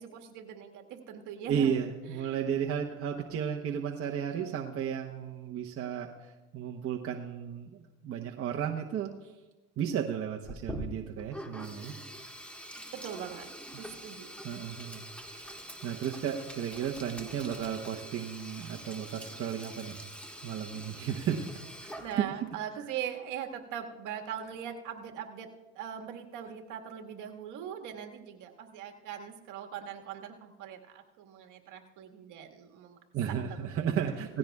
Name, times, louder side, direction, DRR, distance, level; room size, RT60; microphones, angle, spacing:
voice 1, 0.0-1.8 2.1-2.4 12.9-14.3 22.0-25.5 25.8-33.0 33.3-33.9, right 9 dB, 60° right, 2 dB, 1.7 m, -41 dB
voice 2, 1.4-9.3 9.8-12.0 14.4-15.1 15.8-20.0 20.4-21.6 21.9-22.3 33.1-34.4, right 8 dB, 40° right, 2 dB, 1.0 m, -34 dB
Sink (filling or washing), 10.4-22.5, equal, 5° left, 1.5 m, -45 dB
17.5 x 15.5 x 2.4 m, 1.1 s
supercardioid pair, 110°, 35 cm